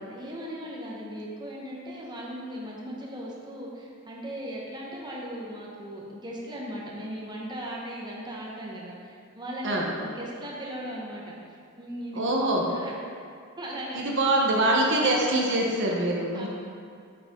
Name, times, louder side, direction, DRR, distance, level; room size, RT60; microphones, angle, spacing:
voice 1, 0.1-11.4 11.8-12.9 13.6-14.4 16.3-16.5, equal, 20° right, -4 dB, 1.3 m, -38 dB
voice 2, 12.1-12.6 13.9-16.5, right 1 dB, 60° right, -2 dB, 1.1 m, -24 dB
8.7 x 8.0 x 3.8 m, 2.3 s
head